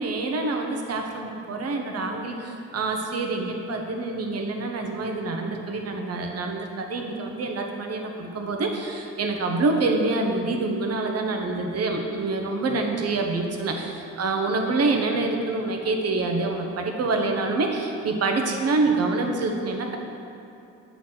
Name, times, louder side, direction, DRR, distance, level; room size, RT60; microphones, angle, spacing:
voice 1, 0.0-20.0, right 3 dB, 55° right, 3 dB, 1.1 m, -26 dB
8.3 x 4.1 x 6.0 m, 2.7 s
cardioid pair, 90°, 30 cm